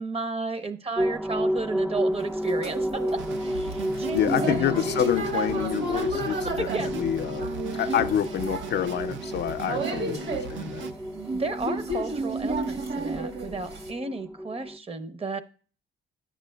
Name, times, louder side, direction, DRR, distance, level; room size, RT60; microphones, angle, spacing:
voice 1, 0.0-3.0 3.4-4.9 5.9-6.0 6.6-6.9 7.7-7.9 9.8-10.2 11.3-15.4, right 3 dB, 30° right, 11 dB, 0.7 m, -33 dB
sound 1, 1.0-14.8, equal, 5° right, 0.3 m, -32 dB
sound 2, 2.2-13.9, right 1 dB, 60° right, 1.4 m, -32 dB
sound 3, 3.2-10.9, right 5 dB, 75° right, 0.6 m, -39 dB
voice 2, 4.1-7.5 7.8-10.9, left 10 dB, 60° left, 7 dB, 0.4 m, -28 dB
9.9 x 7.4 x 2.2 m, 0.39 s
cardioid pair, 90°, 20 cm